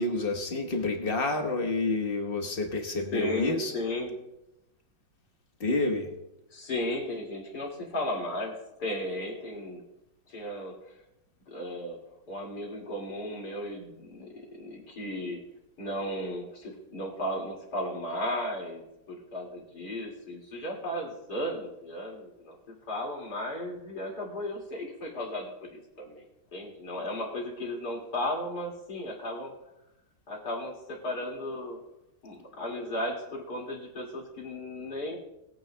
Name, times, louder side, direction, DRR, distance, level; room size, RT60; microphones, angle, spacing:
voice 1, 0.0-3.7 5.6-6.1, left 2 dB, 35° left, 3 dB, 1.2 m, -29 dB
voice 2, 3.1-4.2 6.5-9.8 10.3-10.7 11.5-12.0 12.3-15.4 15.8-26.2 26.5-29.5 30.3-31.8 32.2-35.2, left 1 dB, 55° left, -1 dB, 2.8 m, -35 dB
20.5 x 8.9 x 2.2 m, 0.90 s
omnidirectional pair, 2.1 m